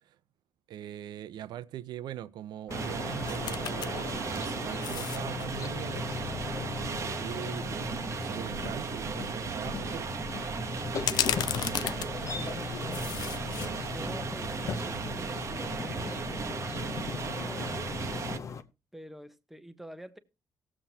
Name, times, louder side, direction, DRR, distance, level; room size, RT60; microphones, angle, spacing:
voice 1, 0.7-6.1 6.6-10.1, right 11 dB, 75° right, 0.6 m, -41 dB
sound 1, 2.7-18.6, left 6 dB, 45° left, 0.8 m, -38 dB
sound 2, 2.7-18.4, right 5 dB, 40° right, 0.9 m, -36 dB
sound 3, 3.3-3.9 4.3-5.5 8.1-8.2 8.6-8.8 11.0-12.6 12.9-13.7 14.1-14.2, left 11 dB, 75° left, 0.4 m, -33 dB
voice 2, 10.9-13.4 13.9-18.1 18.9-20.2, right 1 dB, 5° right, 0.8 m, -47 dB
18.5 x 7.5 x 2.8 m
cardioid pair, 155°, 7 cm